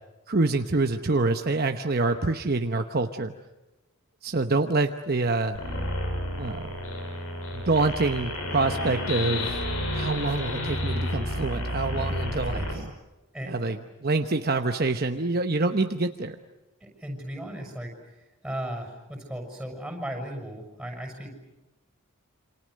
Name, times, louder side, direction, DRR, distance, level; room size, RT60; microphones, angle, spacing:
voice 1, 0.3-3.3 4.2-5.6 6.4-6.7 7.5-9.6 9.9-12.9 13.5-13.8 14.0-16.4, right 3 dB, 45° right, 6 dB, 1.0 m, -26 dB
sound 1, 5.6-12.8, left 1 dB, 90° left, 7.1 m, -30 dB
voice 2, 12.4-12.9 13.3-13.8 16.8-17.9 18.4-21.3, right 1 dB, 5° right, 3 dB, 6.4 m, -36 dB
28.0 x 27.0 x 6.5 m, 1.1 s
head